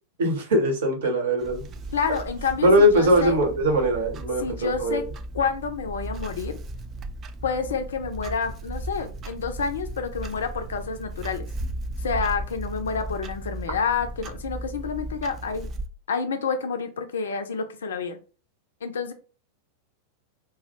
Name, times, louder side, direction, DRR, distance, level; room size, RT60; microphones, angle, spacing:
voice 1, 0.2-1.6 2.6-5.0, equal, 60° right, 3 dB, 0.8 m, -21 dB
Clock, 1.4-15.9, right 1 dB, 30° right, 0.3 m, -36 dB
voice 2, 1.9-3.4 4.4-5.0 5.3-6.6 7.4-11.5 12.0-15.7 16.1-18.2 18.8-19.1, left 5 dB, 65° left, 8 dB, 0.3 m, -29 dB
2.2 x 2.0 x 2.9 m, 0.36 s
figure-of-eight pair, 90°, 0 cm